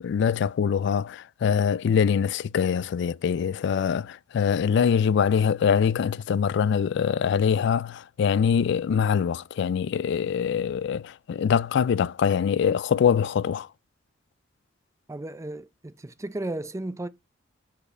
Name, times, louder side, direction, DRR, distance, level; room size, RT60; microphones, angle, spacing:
voice 1, 0.0-13.7, left 7 dB, 65° left, 0.3 m, -24 dB
voice 2, 15.1-17.1, right 2 dB, 15° right, 0.5 m, -34 dB
6.9 x 4.7 x 4.3 m
head